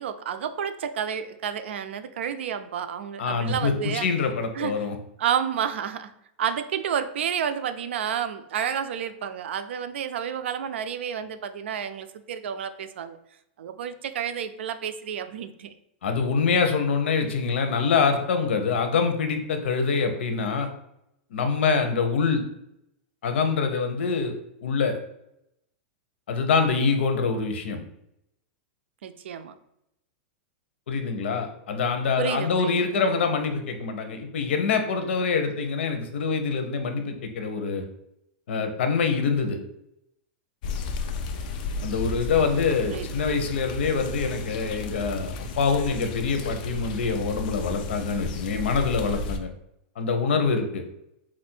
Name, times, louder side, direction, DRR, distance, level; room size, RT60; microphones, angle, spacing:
voice 1, 0.0-4.1 4.5-4.7 5.2-6.1 6.4-13.2 13.6-15.7 29.0-29.5 32.2-32.8 42.3-42.5 42.9-43.1, right 8 dB, 90° right, 11 dB, 0.4 m, -30 dB
voice 2, 3.2-5.0 16.0-20.7 21.3-22.4 23.2-24.3 24.6-25.0 26.3-27.8 30.9-37.8 38.5-39.6 41.8-49.5 50.0-50.8, left 5 dB, 85° left, 6 dB, 0.8 m, -25 dB
sound 1, 40.6-49.4, left 4 dB, 45° left, 0.5 m, -33 dB
4.3 x 2.5 x 4.3 m, 0.80 s
supercardioid pair, 170°, 6 cm